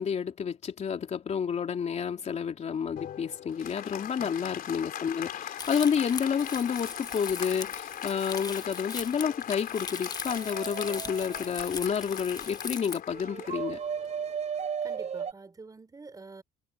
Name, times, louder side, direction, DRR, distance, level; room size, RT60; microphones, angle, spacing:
voice 1, 0.0-13.8, left 7 dB, 40° left, 3.1 m, -30 dB
Applause, 3.0-14.8, left 10 dB, 60° left, 4.1 m, -40 dB
Crumpling crinkling, 5.6-13.0, left 4 dB, 25° left, 1.2 m, -40 dB
sound 1, 10.3-11.7 13.1-15.3, right 7 dB, 40° right, 5.6 m, -35 dB
voice 2, 14.8-16.4, right 3 dB, 20° right, 4.5 m, -47 dB
cardioid pair, 110°, 17 cm